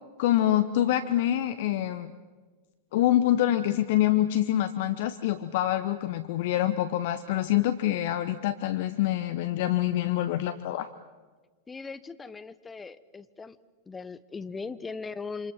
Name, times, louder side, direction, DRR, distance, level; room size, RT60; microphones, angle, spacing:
voice 1, 0.2-2.1 2.9-10.9, left 13 dB, 50° left, 12 dB, 0.9 m, -26 dB
voice 2, 11.7-13.6 13.9-15.5, left 4 dB, 15° left, 13 dB, 1.1 m, -39 dB
27.5 x 26.5 x 6.2 m, 1.4 s
figure-of-eight pair, 90°, 0 cm